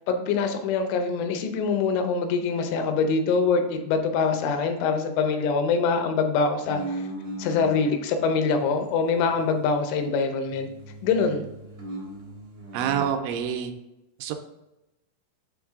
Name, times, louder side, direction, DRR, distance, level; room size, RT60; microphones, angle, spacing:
voice 1, 0.1-7.0 7.4-10.7 11.0-11.4, left 5 dB, 80° left, 6 dB, 3.1 m, -24 dB
sound 1, 6.6-7.9 8.4-10.2 10.4-13.2, right 1 dB, 65° right, 1.1 m, -38 dB
voice 2, 12.7-13.7 14.2-14.3, right 8 dB, 85° right, 6 dB, 2.8 m, -27 dB
7.9 x 3.8 x 3.5 m, 0.94 s
omnidirectional pair, 5.6 m